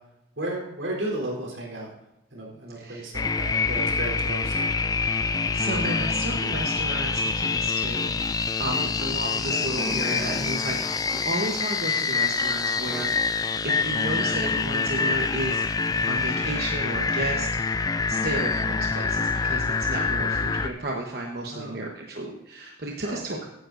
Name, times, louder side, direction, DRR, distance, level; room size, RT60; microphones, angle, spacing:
voice 1, 0.4-1.9 2.3-4.7 8.6-8.9 15.9-16.3 21.5-21.9 23.0-23.4, right 1 dB, 90° right, -2 dB, 3.6 m, -34 dB
voice 2, 2.8-3.1 5.5-15.7 16.0-23.5, right 2 dB, 55° right, 0 dB, 1.1 m, -33 dB
sound 1, 3.1-20.7, left 4 dB, 20° left, 0.3 m, -26 dB
14.5 x 9.7 x 2.6 m, 0.91 s
head